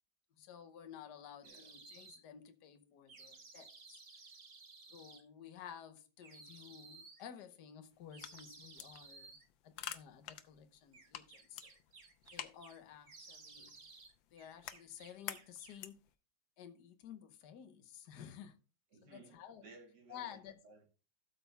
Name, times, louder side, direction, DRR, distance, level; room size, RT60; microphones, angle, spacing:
voice 1, 0.4-4.0 4.9-11.7 12.3-13.8 14.3-15.9 16.6-18.6 19.0-19.6 20.1-20.6, left 9 dB, 65° left, 1.5 m, -53 dB
sound 1, 1.4-2.2 3.1-5.2 6.2-7.2 8.1-9.4 10.9-12.8 13.1-14.1 14.4-15.8, right 4 dB, 35° right, 1.5 m, -57 dB
voice 2, 1.4-1.8 13.6-13.7 18.9-20.9, right 3 dB, 60° right, 2.5 m, -59 dB
sound 2, 7.9-16.1, left 11 dB, 80° left, 1.5 m, -51 dB
12.5 x 6.8 x 3.4 m
omnidirectional pair, 2.1 m